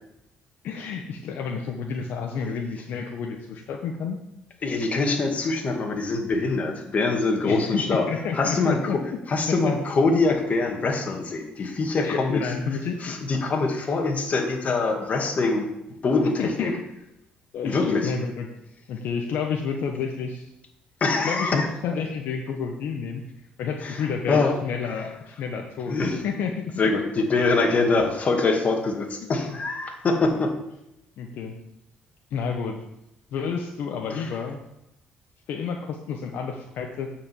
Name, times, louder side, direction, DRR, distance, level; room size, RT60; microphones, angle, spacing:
voice 1, 0.6-4.2 7.4-9.0 9.5-9.7 12.0-13.1 16.4-16.8 17.5-18.5 18.9-20.5 21.2-23.2 23.6-26.0 26.2-26.7 29.2-29.6 31.2-31.6 32.3-32.8 33.3-34.6 35.5-37.1, left 6 dB, 70° left, 2 dB, 1.1 m, -30 dB
voice 2, 4.6-8.1 8.3-9.0 9.3-12.4 13.0-15.7 16.0-16.7 17.6-18.1 21.0-21.7 23.8-24.5 25.9-26.2 26.8-30.5 34.1-34.3, left 3 dB, 45° left, 2 dB, 2.2 m, -24 dB
9.3 x 5.2 x 7.4 m, 0.85 s
cardioid pair, 85°, 4 cm